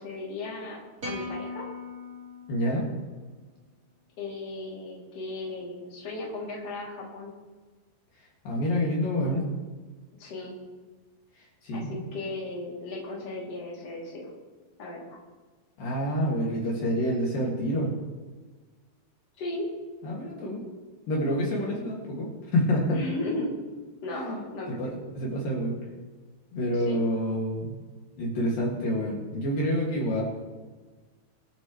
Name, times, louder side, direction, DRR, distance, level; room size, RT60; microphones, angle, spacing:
voice 1, 0.0-1.7 4.2-7.3 10.2-10.6 11.7-14.3 14.8-15.1 19.4-19.7 22.9-23.5 24.0-24.9 26.9-27.0, left 2 dB, 40° left, -4 dB, 3.8 m, -36 dB
sound 1, 1.0-3.4, left 2 dB, 25° right, 2.3 m, -39 dB
voice 2, 2.5-2.8 8.5-9.4 11.6-12.0 15.8-17.9 20.0-20.6 21.1-23.0 24.1-24.4 24.8-25.8 26.5-27.8 28.2-30.2, equal, 65° left, -3 dB, 3.8 m, -27 dB
25.0 x 8.9 x 3.2 m, 1.4 s
omnidirectional pair, 4.4 m